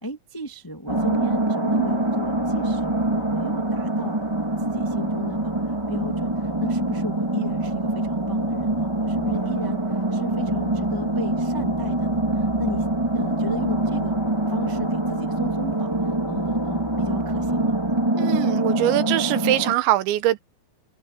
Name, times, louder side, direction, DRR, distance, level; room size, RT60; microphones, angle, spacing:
voice 1, 0.0-12.8 13.1-14.2 14.5-17.8, equal, 35° left, 0.3 m, -35 dB
sound 1, 0.9-19.7, right 1 dB, 10° right, 1.4 m, -24 dB
voice 2, 18.2-20.4, right 14 dB, 75° right, 3.4 m, -22 dB
open air
omnidirectional pair, 5.3 m